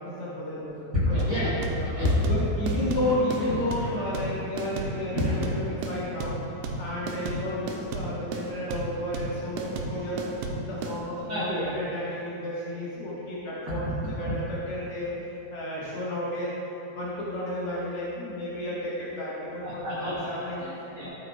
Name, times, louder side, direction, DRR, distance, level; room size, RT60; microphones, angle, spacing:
voice 1, 0.0-1.2 1.7-1.9 2.2-6.4 6.8-13.9 14.2-15.1 15.5-16.5 16.9-20.6, left 1 dB, 80° left, -8 dB, 1.2 m, -32 dB
voice 2, 1.0-2.2 2.6-3.1 3.4-3.9 5.1-5.5 11.3-11.7 13.7-13.9 14.2-14.3 19.6-20.1 20.6-21.1, left 1 dB, 65° right, -10 dB, 1.2 m, -29 dB
sound 1, 1.2-11.0, right 3 dB, 90° right, 2.9 m, -33 dB
13.5 x 7.9 x 2.3 m, 3.0 s
omnidirectional pair, 4.8 m